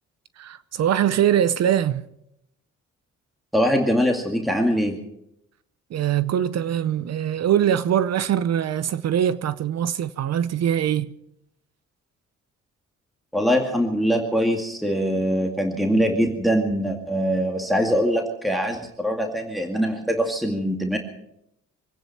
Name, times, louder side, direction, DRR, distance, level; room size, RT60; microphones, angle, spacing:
voice 1, 0.4-2.0 5.9-11.1, right 10 dB, 60° right, 0.7 m, -22 dB
voice 2, 3.5-5.0 13.3-21.0, equal, ahead, 2.1 m, -23 dB
24.5 x 10.0 x 5.9 m
cardioid pair, 90°, 30 cm